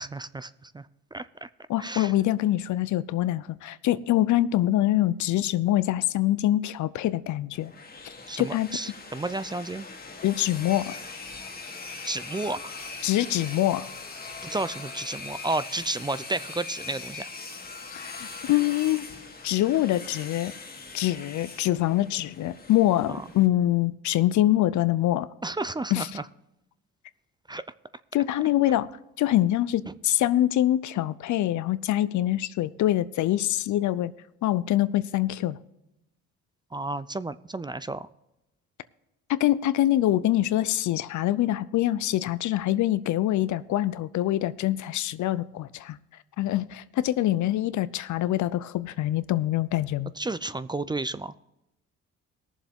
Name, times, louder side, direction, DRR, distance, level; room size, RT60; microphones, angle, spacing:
voice 1, 0.0-1.5 1.8-2.1 8.3-9.9 12.0-12.7 14.4-17.3 23.1-23.2 25.4-26.2 27.5-27.6 29.9-30.0 36.7-38.1 50.2-51.3, right 2 dB, 15° right, 0.4 m, -32 dB
voice 2, 1.7-7.7 8.4-8.8 10.2-10.9 13.0-13.9 17.9-19.1 19.4-20.5 20.9-25.3 25.9-26.1 28.1-28.9 29.2-34.1 34.4-35.6 39.3-46.0 46.4-50.1, left 14 dB, 75° left, 0.6 m, -24 dB
sound 1, 7.5-23.5, left 4 dB, 30° left, 1.9 m, -41 dB
18.5 x 7.3 x 3.6 m
cardioid pair, 90°, 30 cm